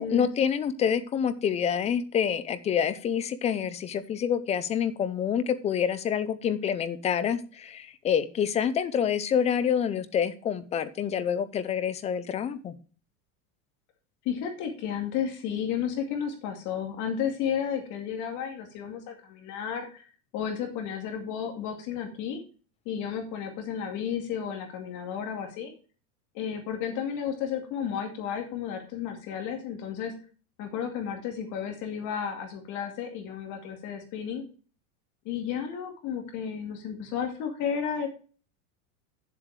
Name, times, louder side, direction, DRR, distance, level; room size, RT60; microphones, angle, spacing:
voice 1, 0.0-12.7, left 8 dB, 15° left, 14 dB, 0.5 m, -27 dB
voice 2, 14.2-20.0 20.3-22.4 22.9-25.7 26.3-30.1 30.6-34.4 35.2-38.1, left 8 dB, 40° left, 4 dB, 2.4 m, -32 dB
9.7 x 7.6 x 4.8 m, 0.38 s
supercardioid pair, 155°, 44 cm